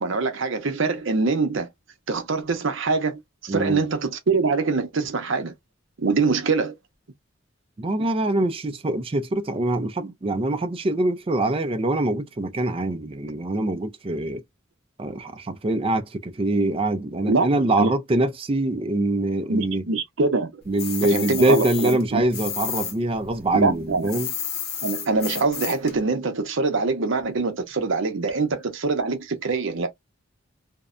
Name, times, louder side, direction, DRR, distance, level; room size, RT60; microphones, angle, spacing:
voice 1, 0.0-1.7 2.1-5.5 6.0-6.7 17.3-17.5 17.8-17.9 19.5-20.6 21.0-22.2 23.5-24.1 24.8-29.9, right 4 dB, 65° right, 0.7 m, -24 dB
voice 2, 3.5-3.8 7.8-14.4 15.0-19.9 20.7-24.3, right 2 dB, 25° right, 0.4 m, -24 dB
sound 1, 20.8-22.9 23.2-25.9, left 8 dB, 50° left, 0.7 m, -31 dB
2.6 x 2.1 x 2.4 m
head